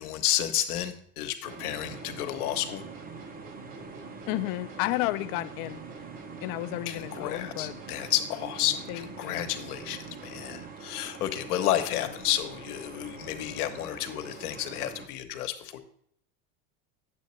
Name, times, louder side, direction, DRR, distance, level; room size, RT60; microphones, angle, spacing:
voice 1, 0.0-2.8 6.9-15.8, left 12 dB, 90° left, 8 dB, 1.0 m, -31 dB
sound 1, 1.4-15.1, right 4 dB, 20° right, 0.7 m, -45 dB
sound 2, 1.5-10.9, right 4 dB, 45° right, 1.9 m, -47 dB
voice 2, 4.3-5.8 6.4-7.8 8.9-9.4 11.9-12.1, left 17 dB, 55° left, 13 dB, 0.6 m, -32 dB
8.3 x 7.7 x 3.1 m, 0.66 s
supercardioid pair, 115°, 43 cm